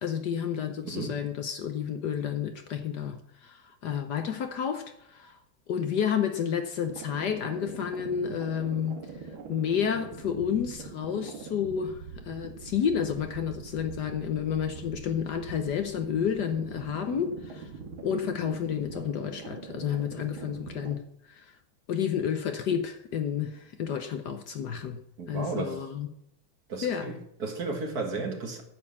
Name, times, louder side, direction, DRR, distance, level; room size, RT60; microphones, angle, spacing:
voice 1, 0.0-5.4 5.7-9.0 9.5-17.7 18.0-21.0 21.3-21.5 21.9-25.0 25.3-26.1 26.8-27.1, left 8 dB, 60° left, 1.3 m, -30 dB
voice 2, 0.8-1.2 25.2-25.8 26.7-28.6, right 3 dB, 50° right, 2.0 m, -34 dB
sound 1, 6.8-20.9, right 4 dB, 75° right, 2.2 m, -43 dB
9.7 x 7.2 x 7.1 m
omnidirectional pair, 2.3 m